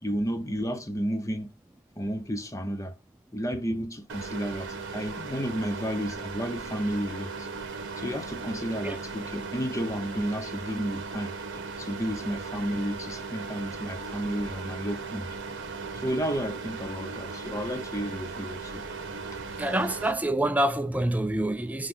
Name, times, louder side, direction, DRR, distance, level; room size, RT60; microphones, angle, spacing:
voice 1, 0.0-1.5 2.0-2.9 3.3-7.5 8.0-11.3 11.8-15.3 16.0-18.8, equal, 15° left, 0.7 m, -32 dB
sound 1, 4.1-20.1, right 4 dB, 55° right, 1.2 m, -37 dB
voice 2, 19.6-21.9, right 1 dB, 5° right, 0.4 m, -26 dB
5.8 x 3.3 x 5.4 m
head